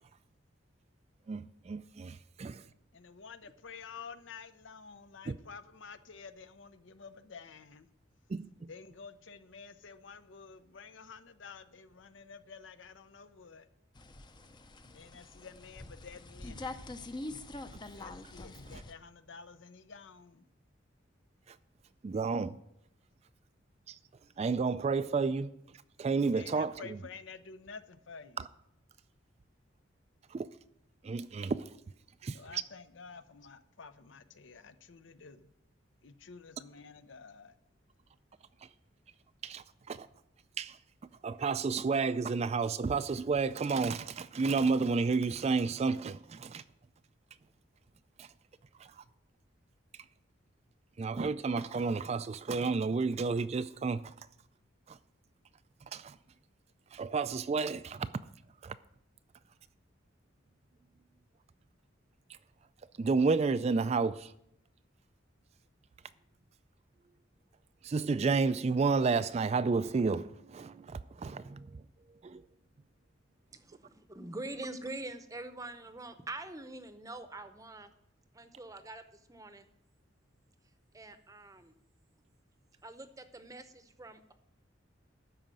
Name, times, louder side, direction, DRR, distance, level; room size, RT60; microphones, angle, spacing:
voice 1, 1.3-2.6 5.3-5.4 8.3-8.7 22.0-22.6 23.9-24.0 24.4-25.5 26.0-26.7 30.3-30.5 31.0-31.7 32.2-32.6 39.4-40.1 40.6-40.8 41.2-46.6 48.2-48.3 48.8-49.0 51.0-54.0 54.9-55.0 55.9-56.2 56.9-58.1 58.6-58.8 63.0-64.3 67.8-71.8 72.2-72.4, right 4 dB, 35° right, 0.3 m, -31 dB
voice 2, 2.9-7.9 8.7-13.7 14.8-16.7 18.0-20.5 26.3-28.5 32.3-35.5 36.0-37.5, left 5 dB, 75° left, 0.7 m, -50 dB
sound 1, 13.9-18.9, left 2 dB, 25° left, 0.6 m, -45 dB
voice 3, 73.5-77.9 78.3-79.7 80.9-81.7 82.8-84.3, right 2 dB, 15° right, 0.8 m, -44 dB
12.5 x 5.0 x 7.6 m
head